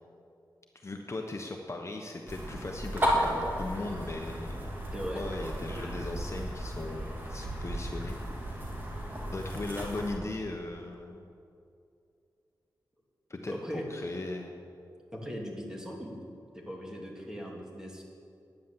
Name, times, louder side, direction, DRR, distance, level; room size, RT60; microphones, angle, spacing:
voice 1, 0.8-4.6 5.1-8.6 9.3-11.3 13.3-14.5, left 2 dB, 40° left, 2 dB, 1.1 m, -38 dB
sound 1, 2.3-10.2, equal, 25° right, 2.8 m, -34 dB
voice 2, 4.9-5.2 13.5-13.8 15.1-16.2 16.5-18.0, equal, 10° right, -1 dB, 2.7 m, -39 dB
10.5 x 10.0 x 7.5 m, 2.5 s
cardioid pair, 65°, 8 cm